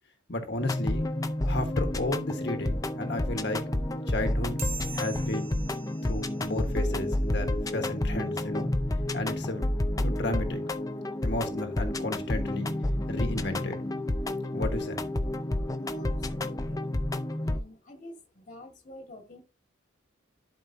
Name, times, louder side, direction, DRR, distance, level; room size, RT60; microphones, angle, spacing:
voice 1, 0.3-1.1 1.4-3.7 4.1-4.6 4.9-5.6 6.0-8.7 9.1-9.7 10.0-10.6 11.2-12.7 13.1-13.8 14.5-15.0, left 1 dB, 55° left, 1.4 m, -33 dB
sound 1, 0.6-17.6, left 1 dB, 15° left, 0.5 m, -30 dB
sound 2, 4.6-7.4, right 6 dB, 35° right, 1.4 m, -43 dB
voice 2, 15.7-16.9 17.4-19.4, equal, 40° left, 1.7 m, -47 dB
11.5 x 4.9 x 2.6 m
head